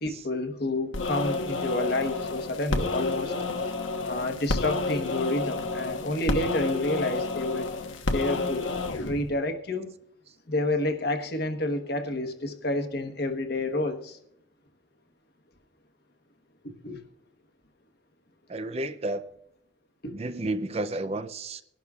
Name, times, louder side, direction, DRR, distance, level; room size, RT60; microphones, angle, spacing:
voice 1, 0.0-3.3 4.1-7.7 8.1-8.7 9.0-9.9 10.5-14.2 16.8-17.0 20.0-20.1, left 2 dB, 50° left, 1.2 m, -29 dB
sound 1, 0.9-9.3, left 3 dB, 75° left, 1.1 m, -30 dB
voice 2, 18.5-19.3 20.1-21.6, right 2 dB, 30° right, 0.4 m, -32 dB
21.5 x 11.5 x 2.4 m
head